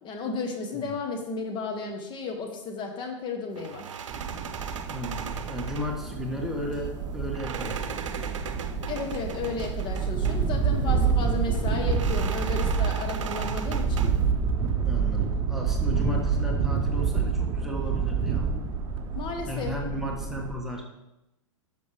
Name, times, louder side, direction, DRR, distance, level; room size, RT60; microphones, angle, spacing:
voice 1, 0.0-3.9 8.9-14.1 19.1-19.7, left 4 dB, 30° left, 3 dB, 1.4 m, -33 dB
sound 1, 3.6-14.3, right 7 dB, 70° right, 0.7 m, -39 dB
sound 2, 4.1-20.5, right 5 dB, 30° right, 1.1 m, -28 dB
voice 2, 4.9-8.4 14.8-18.5 19.5-20.9, left 1 dB, ahead, -1 dB, 1.4 m, -35 dB
10.5 x 6.5 x 3.5 m, 0.92 s
hypercardioid pair, 110°, 16 cm